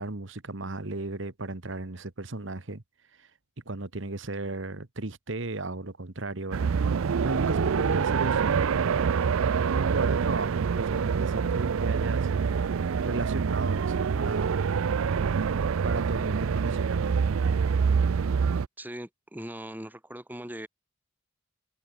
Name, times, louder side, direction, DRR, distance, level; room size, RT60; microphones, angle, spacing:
voice 1, 0.0-2.8 3.2-3.3 3.6-6.7 7.2-9.1 9.6-12.3 13.0-14.6 15.8-17.3, right 2 dB, 65° right, 1.5 m, -35 dB
sound 1, 6.5-18.7, right 6 dB, 90° right, 0.4 m, -26 dB
voice 2, 18.8-20.7, right 1 dB, 10° right, 2.0 m, -40 dB
head